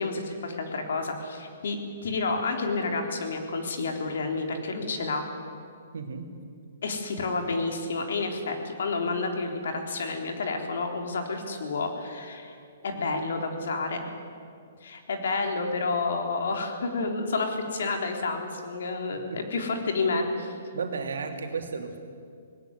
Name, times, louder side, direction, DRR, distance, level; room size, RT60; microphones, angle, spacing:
voice 1, 0.0-5.3 6.8-12.6 12.8-14.1 14.8-20.6, left 3 dB, 70° left, 4 dB, 3.7 m, -30 dB
voice 2, 5.9-6.4 19.1-19.5 20.7-22.0, right 5 dB, 80° right, 4 dB, 2.9 m, -34 dB
19.0 x 17.5 x 9.7 m, 2.3 s
hypercardioid pair, 165°, 0 cm